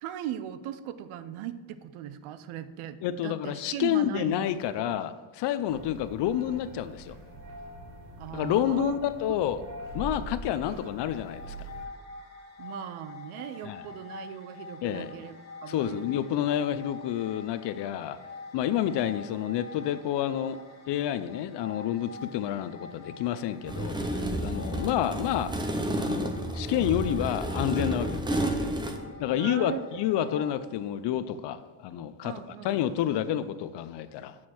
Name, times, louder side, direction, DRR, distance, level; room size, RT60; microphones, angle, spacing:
voice 1, 0.0-3.0 3.2-4.4 4.8-4.9 8.2-9.0 12.6-16.0 29.3-29.9 32.2-33.0, right 11 dB, 85° right, 0.7 m, -38 dB
voice 2, 3.0-7.2 8.3-9.6 9.9-11.7 13.6-13.8 14.8-15.1 15.7-18.2 18.5-20.6 20.9-25.5 26.0-28.4 29.2-32.3 32.6-34.4, left 11 dB, 60° left, 0.5 m, -29 dB
sound 1, 5.7-11.9, right 1 dB, 60° right, 1.1 m, -43 dB
sound 2, 11.1-30.5, left 4 dB, 35° left, 1.0 m, -46 dB
sound 3, 23.7-29.0, right 1 dB, 10° right, 0.4 m, -31 dB
7.4 x 4.4 x 6.2 m
cardioid pair, 155°, 48 cm